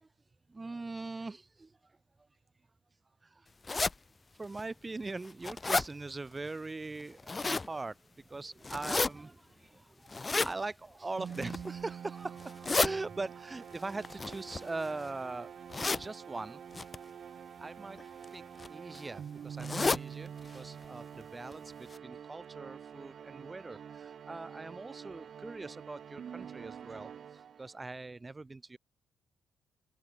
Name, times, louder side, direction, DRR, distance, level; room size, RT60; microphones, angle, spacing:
voice 1, 0.5-2.0 3.2-3.5 3.7-3.9 4.4-15.5 16.0-16.6 17.6-18.0 18.3-18.4 18.7-28.8, right 3 dB, 20° right, 2.1 m, -41 dB
sound 1, 3.7-3.9 4.6-4.7 5.1-5.9 7.0-7.7 8.6-9.1 10.1-10.5 11.3-11.7 12.4-12.9 14.0-15.0 15.7-16.1 16.7-17.0 18.0-18.3 18.6-18.7 18.9-19.0 19.6-20.0 20.5-20.6 20.8-20.9 21.5-21.6 21.9-22.0, left 3 dB, 25° left, 0.6 m, -31 dB
sound 2, 11.2-27.9, right 8 dB, 55° right, 7.4 m, -46 dB
open air
cardioid pair, 90°, 0 cm